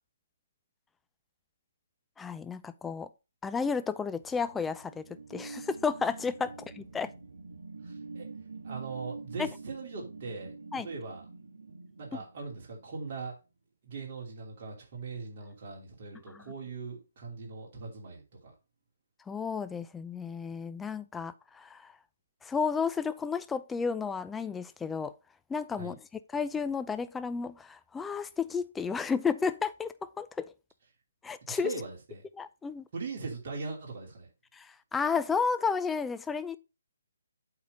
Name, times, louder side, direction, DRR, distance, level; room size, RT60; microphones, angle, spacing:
voice 1, 2.2-3.1 3.4-7.1 10.7-10.9 16.3-16.4 19.3-21.9 22.4-25.1 25.5-26.0 26.3-30.5 31.2-31.7 32.3-32.9 34.5-36.6, left 5 dB, 10° left, 0.4 m, -32 dB
sound 1, 3.9-13.1, right 4 dB, 80° right, 1.1 m, -46 dB
voice 2, 7.8-8.3 8.6-10.5 10.8-11.3 12.0-13.4 13.8-18.5 25.8-26.0 31.6-32.2 32.9-34.3, right 4 dB, 45° right, 2.8 m, -40 dB
8.5 x 3.8 x 5.4 m
hypercardioid pair, 145°, 0 cm